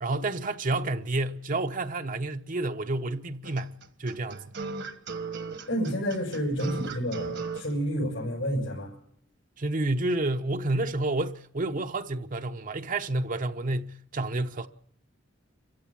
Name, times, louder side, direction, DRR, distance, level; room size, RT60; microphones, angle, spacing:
voice 1, 0.0-4.4 9.6-14.7, right 2 dB, 45° right, 0.9 m, -30 dB
sound 1, 3.4-7.7, right 4 dB, 65° right, 1.5 m, -36 dB
voice 2, 5.7-8.9, equal, 80° left, 6.4 m, -29 dB
27.0 x 15.5 x 7.5 m
head